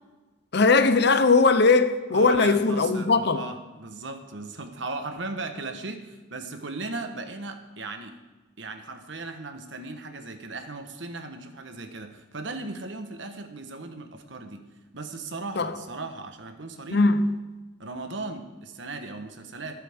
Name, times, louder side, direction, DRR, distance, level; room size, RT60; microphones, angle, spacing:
voice 1, 0.5-3.4 15.6-15.7 16.9-17.4, left 3 dB, 60° left, 0.8 m, -20 dB
voice 2, 2.1-8.2 8.6-14.7 14.9-17.0 17.8-19.8, right 3 dB, 70° right, 1.3 m, -37 dB
22.0 x 8.3 x 3.7 m
head